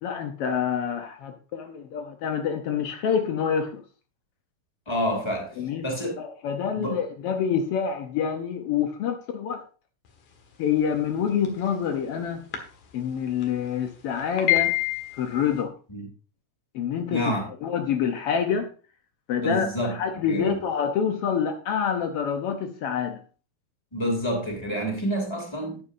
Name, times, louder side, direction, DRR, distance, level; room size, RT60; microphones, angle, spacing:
voice 1, 0.0-3.8 5.6-5.8 6.2-9.6 10.6-12.5 12.9-14.8 15.2-15.7 16.7-17.2 17.6-18.7 19.3-23.2, left 7 dB, 90° left, 1.2 m, -27 dB
voice 2, 4.9-5.6 5.8-6.1 6.8-7.0 15.9-16.1 17.1-17.4 19.4-20.6 23.9-25.8, equal, 10° left, 2.5 m, -28 dB
sound 1, 11.3-11.7 12.5-12.6 12.9-13.0 13.4-13.5 14.2-15.5, left 17 dB, 70° left, 3.0 m, -25 dB
12.0 x 9.6 x 2.6 m
omnidirectional pair, 3.9 m